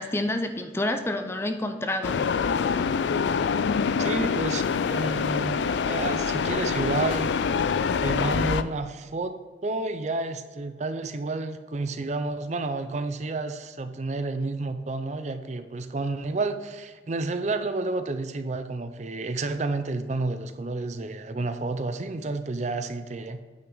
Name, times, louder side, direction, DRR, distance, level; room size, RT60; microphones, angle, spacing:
voice 1, 0.0-2.3, left 1 dB, 15° left, 7 dB, 0.4 m, -28 dB
sound 1, 2.0-8.6, left 6 dB, 80° left, 0.4 m, -25 dB
voice 2, 4.0-7.3 8.0-9.3 9.6-23.4, right 3 dB, 40° right, 9 dB, 0.5 m, -30 dB
9.0 x 5.9 x 3.9 m, 1.4 s
head